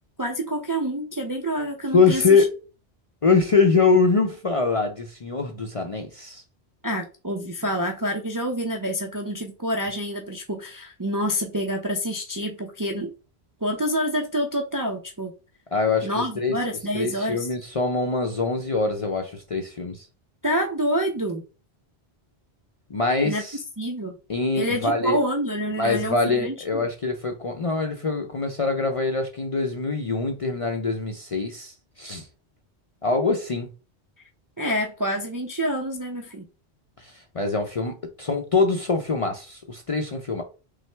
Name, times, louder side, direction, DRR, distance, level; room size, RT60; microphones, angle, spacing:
voice 1, 0.2-2.4 6.8-13.1 13.6-15.3 16.0-17.5 20.4-21.4 23.2-23.4 23.8-24.1 24.5-26.9 34.6-36.4, equal, 30° right, 0.4 m, -27 dB
voice 2, 1.9-2.5 3.2-6.4 15.7-16.6 16.9-20.1 22.9-23.6 24.3-25.2 25.7-32.3 33.0-33.7 37.0-40.4, left 4 dB, 45° left, 0.5 m, -23 dB
5.6 x 2.0 x 3.3 m
omnidirectional pair, 1.1 m